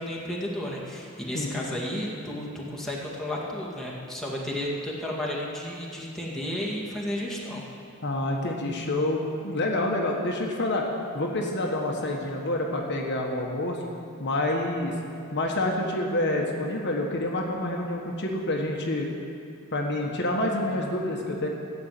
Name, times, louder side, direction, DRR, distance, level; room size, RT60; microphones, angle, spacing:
voice 1, 0.0-7.6, left 1 dB, ahead, -5 dB, 2.2 m, -32 dB
voice 2, 1.3-1.7 8.0-10.9 11.1-13.8 14.2-14.9 15.3-19.1 19.7-21.5, left 1 dB, 55° left, 0 dB, 1.5 m, -28 dB
14.5 x 7.5 x 9.2 m, 2.4 s
head